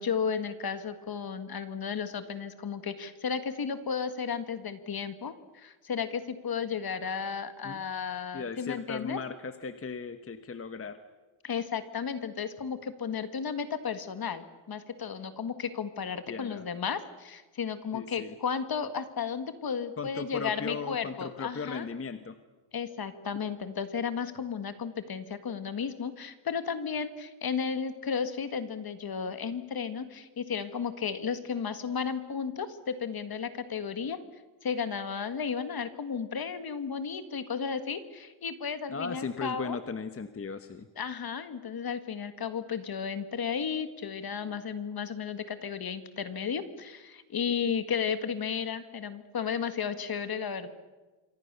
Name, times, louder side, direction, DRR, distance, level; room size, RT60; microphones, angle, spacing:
voice 1, 0.0-9.2 11.4-21.9 22.7-34.2 34.6-39.8 41.0-50.7, left 6 dB, 45° left, 11 dB, 1.8 m, -34 dB
voice 2, 8.3-11.0 16.3-16.6 17.9-18.3 20.0-22.4 38.9-40.9, left 4 dB, 25° left, 9 dB, 1.0 m, -37 dB
28.0 x 24.5 x 6.8 m, 1.2 s
wide cardioid pair, 170°, 50 cm